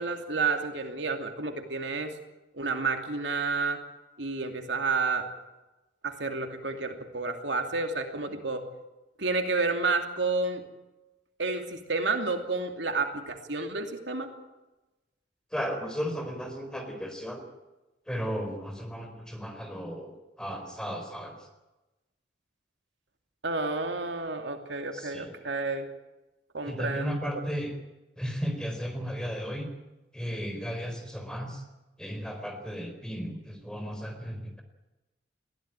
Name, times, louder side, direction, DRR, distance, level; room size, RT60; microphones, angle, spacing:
voice 1, 0.0-2.1 2.5-3.8 4.2-5.3 6.0-8.6 9.2-10.6 11.4-14.3 23.4-25.9 26.5-27.3, right 3 dB, 80° right, 5 dB, 2.7 m, -30 dB
voice 2, 15.5-17.4 18.1-21.4 24.9-25.3 26.7-27.7 28.2-29.7 30.1-31.6 32.0-34.6, equal, 5° left, 4 dB, 4.2 m, -35 dB
21.0 x 16.0 x 9.1 m, 1.0 s
head